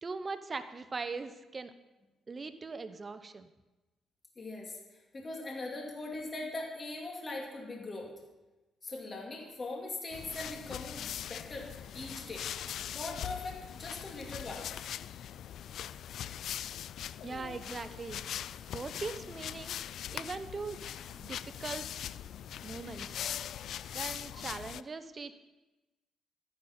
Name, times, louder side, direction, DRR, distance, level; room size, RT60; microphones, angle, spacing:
voice 1, 0.0-1.7 2.3-3.5 17.2-18.2 18.7-19.8 20.1-21.8 22.6-23.2 23.9-25.3, right 4 dB, 30° right, 10 dB, 0.8 m, -40 dB
voice 2, 4.4-8.1 8.8-12.5 12.9-14.8, left 2 dB, 35° left, -1 dB, 2.5 m, -41 dB
sound 1, 10.1-24.8, left 10 dB, 70° left, 0.3 m, -41 dB
13.0 x 10.0 x 4.4 m, 1.1 s
cardioid pair, 90°, 0 cm